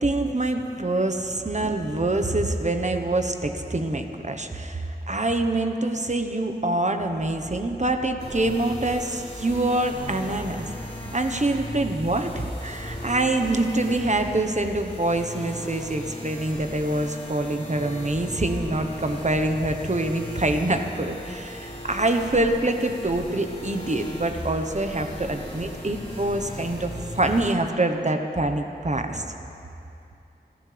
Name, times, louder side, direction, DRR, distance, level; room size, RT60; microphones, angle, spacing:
voice 1, 0.0-10.7 11.1-29.2, right 2 dB, 45° right, 6 dB, 1.2 m, -25 dB
sound 1, 7.2-12.3, left 1 dB, 10° right, 2.9 m, -46 dB
sound 2, 8.2-27.6, left 1 dB, 40° left, 4.7 m, -37 dB
26.5 x 15.5 x 3.5 m, 2.7 s
wide cardioid pair, 55°, 17 cm